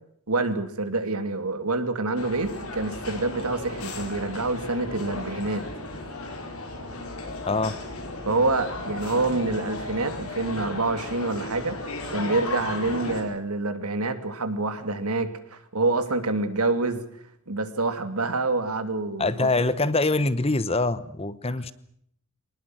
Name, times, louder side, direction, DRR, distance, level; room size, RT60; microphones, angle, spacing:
voice 1, 0.3-5.7 8.3-11.8 12.1-17.0 17.5-19.5, right 3 dB, 90° right, 9 dB, 2.7 m, -27 dB
sound 1, 2.2-13.2, left 2 dB, 85° left, 5.3 m, -35 dB
voice 2, 7.5-7.8 19.2-21.7, left 2 dB, 25° left, 16 dB, 1.0 m, -24 dB
24.5 x 20.0 x 7.9 m, 0.69 s
head